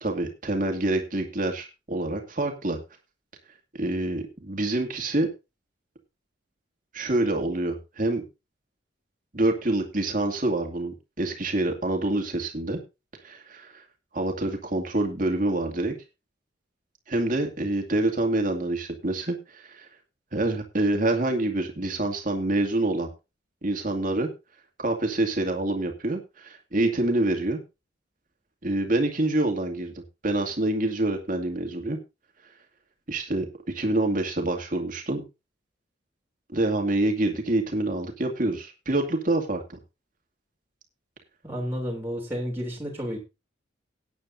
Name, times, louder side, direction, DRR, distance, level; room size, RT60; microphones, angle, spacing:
voice 1, 0.0-2.8 3.7-5.3 6.9-8.2 9.3-12.8 13.2-13.8 14.1-15.9 17.1-19.9 20.3-23.1 23.6-24.3 24.8-27.6 28.6-32.0 33.1-35.2 36.5-39.8, right 2 dB, 40° right, 4 dB, 2.3 m, -26 dB
voice 2, 41.4-43.2, equal, 10° right, -3 dB, 3.2 m, -31 dB
18.0 x 9.5 x 2.7 m, 0.27 s
head